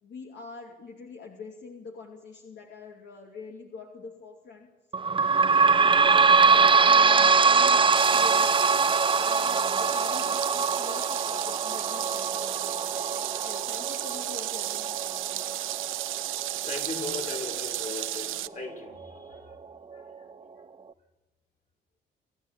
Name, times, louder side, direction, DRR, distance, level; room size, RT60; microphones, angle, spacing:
voice 1, 0.0-4.7 5.2-8.7 9.2-12.9 13.4-15.6, left 4 dB, 65° left, 1 dB, 2.8 m, -45 dB
sound 1, 4.9-18.1 18.7-18.8 19.0-19.1 19.9-20.0, right 5 dB, 25° right, 0.7 m, -23 dB
sound 2, 8.0-18.5, right 14 dB, 85° right, 0.8 m, -33 dB
voice 2, 16.6-19.6 19.9-20.3, left 3 dB, 40° left, 2 dB, 5.5 m, -38 dB
28.5 x 12.5 x 8.5 m, 1.2 s
cardioid pair, 90°, 20 cm